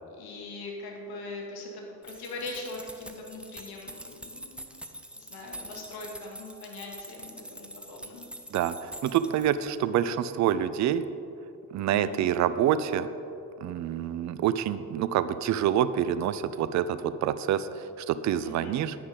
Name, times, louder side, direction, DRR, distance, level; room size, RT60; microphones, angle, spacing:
voice 1, 0.2-4.7 5.2-8.3 11.9-12.2 18.4-18.8, left 2 dB, 50° left, 0 dB, 2.3 m, -41 dB
sound 1, 2.0-9.8, right 1 dB, ahead, 1.0 m, -45 dB
voice 2, 8.5-11.0 11.7-13.1 13.6-19.0, right 10 dB, 40° right, 14 dB, 0.5 m, -27 dB
10.0 x 9.5 x 5.3 m, 2.7 s
figure-of-eight pair, 45°, 48 cm